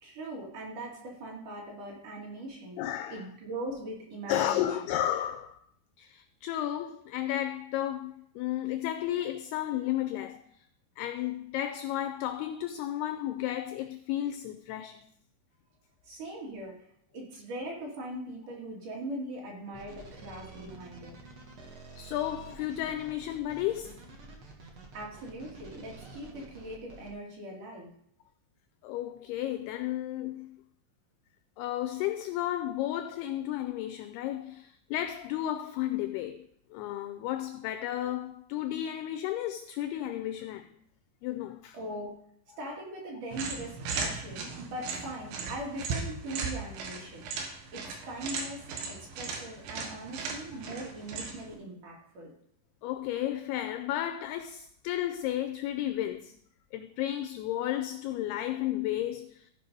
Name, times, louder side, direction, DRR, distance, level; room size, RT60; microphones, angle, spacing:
voice 1, 0.0-2.8 3.1-4.9 16.0-16.8 17.1-21.2 24.9-27.9 41.7-42.2 42.6-47.3 47.7-52.3, right 1 dB, 50° right, 3.3 m, -40 dB
voice 2, 2.8-3.2 4.3-5.6 6.0-10.7 11.0-15.1 22.0-24.0 28.8-30.6 31.6-40.7 41.2-41.8 52.8-56.4 56.7-59.5, left 12 dB, 85° left, 2.2 m, -33 dB
sound 1, 19.7-27.1, right 3 dB, 70° right, 1.2 m, -49 dB
sound 2, 43.3-51.5, right 4 dB, 90° right, 3.8 m, -37 dB
15.0 x 5.2 x 5.3 m
omnidirectional pair, 5.2 m